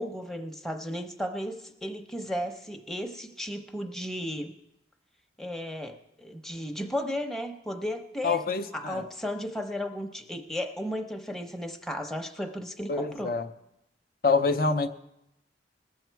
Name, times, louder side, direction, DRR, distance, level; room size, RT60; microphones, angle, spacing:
voice 1, 0.0-4.5 5.4-8.4 8.7-13.3, equal, ahead, 3 dB, 0.7 m, -34 dB
voice 2, 8.2-9.0 12.9-13.5 14.2-14.9, left 4 dB, 50° left, 6 dB, 0.6 m, -26 dB
19.5 x 7.2 x 4.6 m, 0.83 s
head